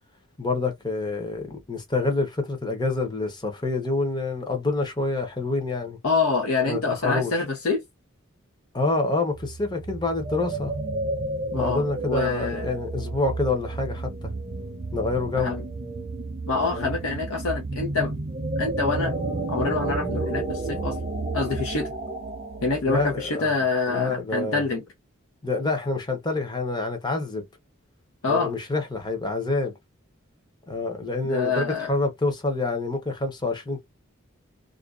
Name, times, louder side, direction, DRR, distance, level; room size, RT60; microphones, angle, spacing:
voice 1, 0.4-6.0 6.6-7.4 8.7-10.7 11.5-14.3 14.9-15.6 16.7-16.9 22.9-23.5 23.9-24.6 25.4-27.4 28.3-29.7 30.7-33.8, left 3 dB, 20° left, 0.7 m, -27 dB
voice 2, 6.0-7.8 11.5-12.7 15.4-15.6 16.5-18.1 18.6-19.1 19.5-21.0 21.3-21.9 22.6-24.8 28.2-28.5 31.2-31.9, left 4 dB, 90° left, 0.7 m, -26 dB
sound 1, 9.3-23.5, right 2 dB, 30° right, 0.6 m, -31 dB
2.5 x 2.2 x 2.3 m
head